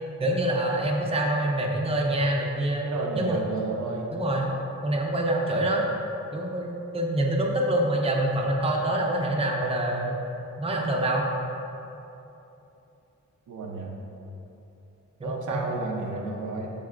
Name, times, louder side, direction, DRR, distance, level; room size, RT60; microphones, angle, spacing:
voice 1, 0.2-2.8 3.2-3.4 4.1-4.5 4.8-5.9 6.3-10.1 10.6-11.2 15.2-15.7, right 1 dB, 20° right, -1 dB, 0.7 m, -26 dB
voice 2, 2.8-4.2 13.5-13.9 15.2-16.7, right 3 dB, 80° right, 0 dB, 0.8 m, -31 dB
12.0 x 4.1 x 2.5 m, 2.9 s
wide cardioid pair, 130°, 29 cm